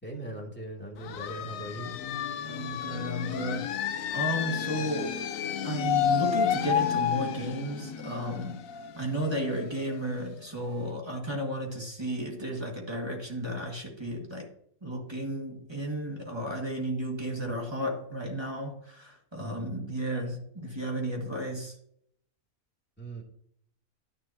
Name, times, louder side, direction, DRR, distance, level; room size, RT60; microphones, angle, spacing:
voice 1, 0.0-1.9 23.0-23.2, right 2 dB, 5° left, -2 dB, 2.6 m, -39 dB
sound 1, 1.0-10.5, left 8 dB, 70° left, 1.1 m, -31 dB
voice 2, 2.4-3.8 4.1-5.2 5.6-8.6 9.0-14.5 14.8-21.8, equal, 20° right, 0 dB, 2.0 m, -33 dB
11.0 x 10.0 x 2.8 m, 0.68 s
omnidirectional pair, 1.5 m